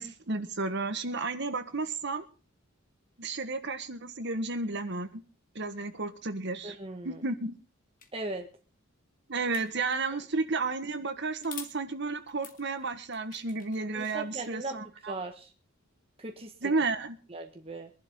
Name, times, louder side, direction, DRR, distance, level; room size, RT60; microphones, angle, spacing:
voice 1, 0.0-2.2 3.2-5.2 5.5-6.8 7.0-7.6 9.3-15.1 16.6-17.2, right 3 dB, 60° right, 9 dB, 1.5 m, -32 dB
voice 2, 6.6-7.2 8.1-8.5 13.9-15.5 16.2-16.7 17.3-17.9, right 2 dB, 30° right, 3 dB, 1.5 m, -39 dB
sound 1, 8.0-8.1 9.5-10.2 11.4-11.8 12.3-14.5, left 7 dB, 45° left, 2.1 m, -47 dB
23.5 x 11.5 x 3.7 m, 0.34 s
head